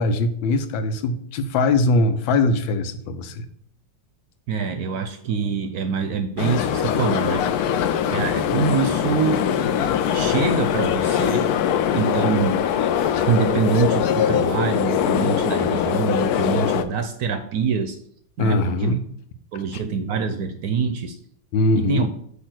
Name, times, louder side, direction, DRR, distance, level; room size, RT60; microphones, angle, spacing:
voice 1, 0.0-3.4 18.4-19.0 21.5-22.1, left 2 dB, 90° left, 10 dB, 1.5 m, -21 dB
voice 2, 4.5-9.4 10.1-11.5 11.9-12.6 13.3-18.0 18.4-19.0 19.5-21.2 21.7-22.1, right 6 dB, 70° right, 7 dB, 0.9 m, -25 dB
sound 1, 6.4-16.8, left 9 dB, 75° left, 0.9 m, -22 dB
8.4 x 2.9 x 6.1 m, 0.67 s
omnidirectional pair, 2.1 m